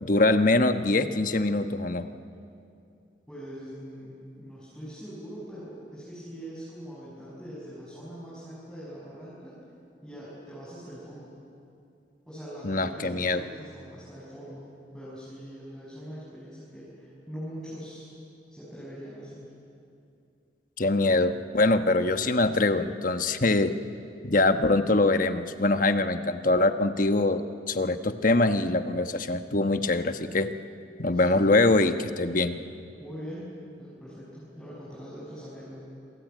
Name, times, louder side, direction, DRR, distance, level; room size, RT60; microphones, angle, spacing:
voice 1, 0.0-2.1 12.6-13.4 20.8-23.7 24.2-30.5 31.0-32.6, left 2 dB, 50° left, 8 dB, 1.2 m, -23 dB
voice 2, 3.3-9.5 10.0-11.3 12.3-18.1 18.5-19.5 31.1-31.7 33.0-35.9, equal, 5° left, -9 dB, 6.6 m, -42 dB
27.0 x 23.0 x 9.3 m, 2.5 s
head